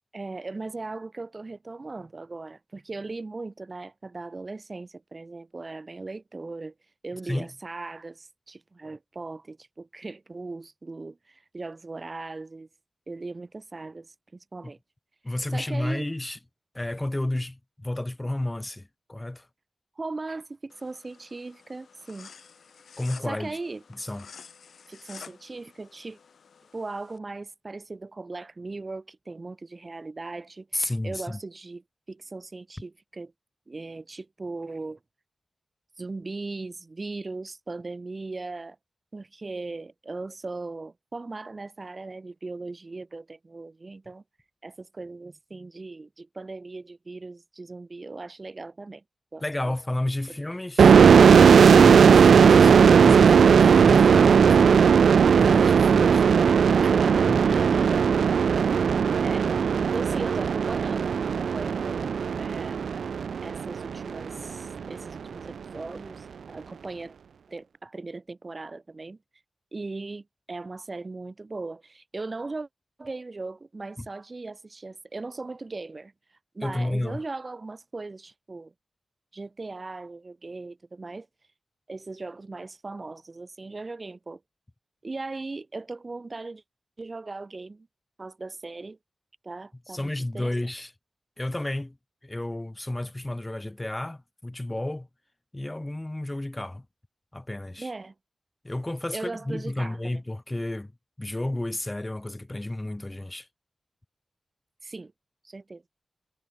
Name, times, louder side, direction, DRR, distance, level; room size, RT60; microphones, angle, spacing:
voice 1, 0.1-6.7 7.0-12.7 13.1-14.8 15.5-16.1 20.0-22.3 23.2-23.8 24.9-26.2 26.7-31.8 32.1-33.3 33.7-35.0 36.0-38.8 39.1-44.2 44.6-49.0 49.3-49.7 56.8-58.2 59.2-62.9 63.4-67.1 67.5-69.2 69.7-72.7 73.0-76.1 76.5-78.7 79.3-81.3 81.9-84.4 85.0-86.6 87.0-87.9 88.2-89.0 89.4-90.5 97.8-98.1 99.1-100.2 104.8-105.1 105.4-105.8, right 3 dB, 40° right, 3.3 m, -38 dB
voice 2, 15.2-16.4 16.7-19.5 23.0-23.6 23.9-24.3 30.7-31.4 49.4-56.3 57.3-57.6 74.0-74.1 76.6-77.2 89.9-90.9 91.4-92.0 92.2-95.1 95.5-96.8 97.3-97.9 98.6-100.9 101.2-103.5, left 1 dB, 20° left, 3.0 m, -32 dB
sound 1, 20.7-27.2, left 6 dB, 80° left, 2.8 m, -50 dB
sound 2, 50.8-64.2, right 6 dB, 90° right, 0.4 m, -17 dB
cardioid pair, 70°, 0 cm